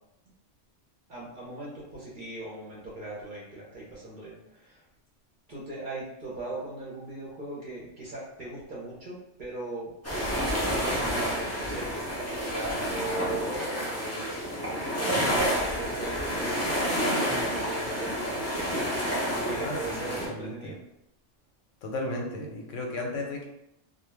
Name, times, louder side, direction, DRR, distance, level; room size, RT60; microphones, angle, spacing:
voice 1, 1.1-4.8 5.5-9.9 10.4-16.7 17.2-18.4 19.4-20.8, right 2 dB, 50° right, -6 dB, 0.7 m, -39 dB
sound 1, 10.0-20.3, equal, 20° left, 0.5 m, -29 dB
voice 2, 19.5-20.7 21.8-23.5, left 2 dB, 85° left, 1 dB, 0.9 m, -35 dB
2.2 x 2.2 x 3.2 m, 0.85 s
omnidirectional pair, 1.2 m